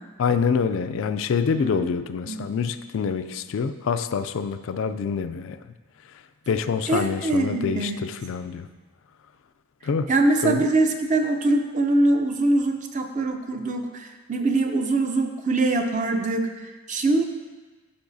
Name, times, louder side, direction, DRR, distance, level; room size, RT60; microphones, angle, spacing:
voice 1, 0.2-5.7 6.0-8.7 9.8-10.1 10.4-10.6, left 6 dB, 60° left, 10 dB, 0.3 m, -26 dB
voice 2, 6.9-8.0 10.1-17.2, right 2 dB, 35° right, 5 dB, 0.6 m, -23 dB
13.0 x 5.5 x 2.7 m, 1.3 s
head